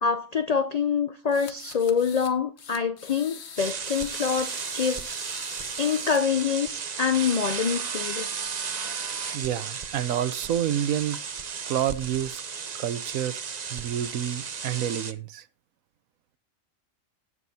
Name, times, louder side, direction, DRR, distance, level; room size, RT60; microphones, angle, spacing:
voice 1, 0.0-5.0 5.8-8.3, left 6 dB, 75° left, 0.3 m, -26 dB
sound 1, 1.3-2.3 2.6-6.2, left 6 dB, 55° left, 1.3 m, -44 dB
sound 2, 3.6-15.1, right 6 dB, 40° right, 0.7 m, -34 dB
voice 2, 9.3-11.2 11.7-12.4 12.8-13.4 13.7-15.4, right 10 dB, 90° right, 1.1 m, -28 dB
18.0 x 6.1 x 2.7 m
omnidirectional pair, 1.4 m